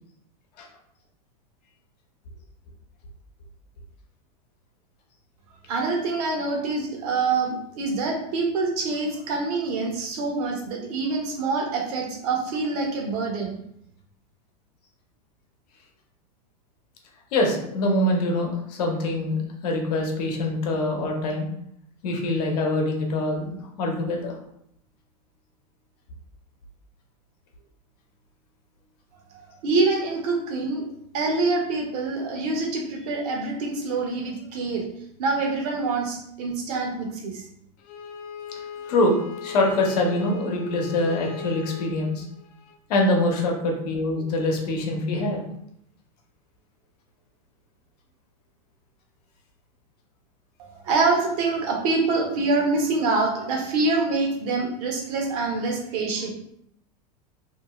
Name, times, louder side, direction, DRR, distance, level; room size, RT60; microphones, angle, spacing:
voice 1, 5.7-13.5 29.3-30.9 31.1-34.9 35.2-37.4 50.6-56.3, right 3 dB, 65° right, 1 dB, 0.9 m, -25 dB
voice 2, 17.3-21.5 22.0-24.3 38.9-39.1 39.4-42.2 42.9-45.4, left 2 dB, 70° left, 1 dB, 0.8 m, -24 dB
Bowed string instrument, 37.8-42.8, left 5 dB, 45° left, 0.4 m, -38 dB
2.7 x 2.2 x 3.0 m, 0.73 s
hypercardioid pair, 120°, 21 cm